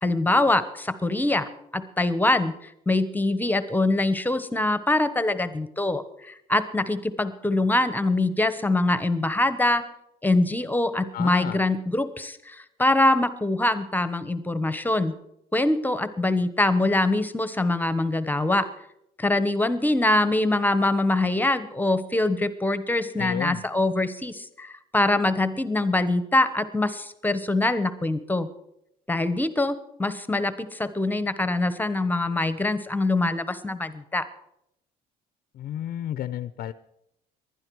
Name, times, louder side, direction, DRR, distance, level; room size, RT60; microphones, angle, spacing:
voice 1, 0.0-9.8 10.2-15.1 15.5-18.7 19.2-28.5 29.1-34.3, left 2 dB, 10° left, 13 dB, 1.0 m, -24 dB
voice 2, 11.1-11.6 23.2-23.6 35.5-36.7, left 11 dB, 60° left, 14 dB, 0.6 m, -32 dB
20.0 x 12.0 x 4.8 m, 0.80 s
cardioid pair, 110°, 17 cm